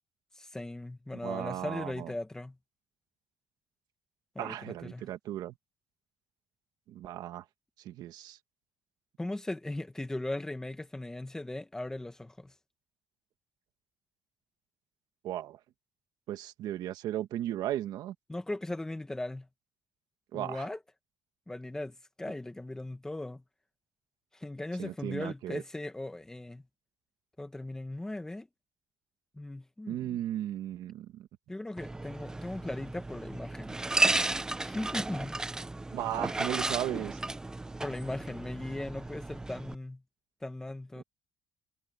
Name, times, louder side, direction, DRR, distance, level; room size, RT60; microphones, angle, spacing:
voice 1, 0.4-2.6 4.3-5.1 9.2-12.5 18.3-19.5 20.3-20.8 21.5-23.4 24.3-26.6 27.4-28.5 29.3-30.2 31.5-33.8 34.6-35.4 37.8-40.0 40.4-41.0, left 2 dB, 5° left, 1.3 m, -38 dB
voice 2, 1.2-2.1 4.4-5.5 6.9-7.4 7.8-8.4 15.2-15.6 16.3-18.2 20.3-20.7 24.8-25.6 29.9-31.3 35.9-37.2 41.0-41.1, right 12 dB, 65° right, 1.7 m, -36 dB
sound 1, 31.8-39.7, right 2 dB, 10° right, 0.5 m, -33 dB
cardioid pair, 160°, 7 cm